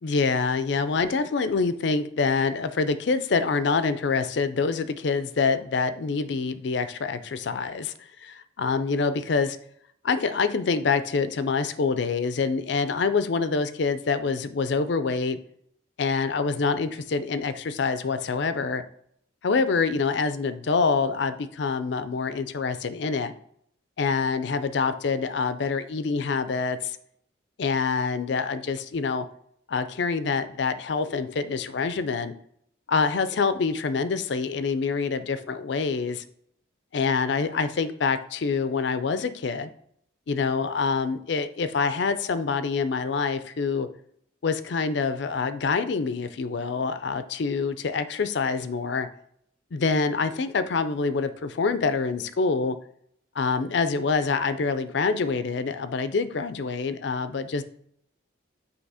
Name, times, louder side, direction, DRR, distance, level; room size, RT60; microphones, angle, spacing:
voice 1, 0.0-7.9 8.2-9.6 10.0-15.4 16.0-18.8 19.4-23.3 24.0-27.0 27.6-29.3 29.7-32.3 32.9-36.2 36.9-39.7 40.3-43.9 44.4-49.1 49.7-52.8 53.4-57.6, left 4 dB, 60° left, 12 dB, 0.4 m, -26 dB
7.9 x 2.9 x 4.8 m, 0.68 s
head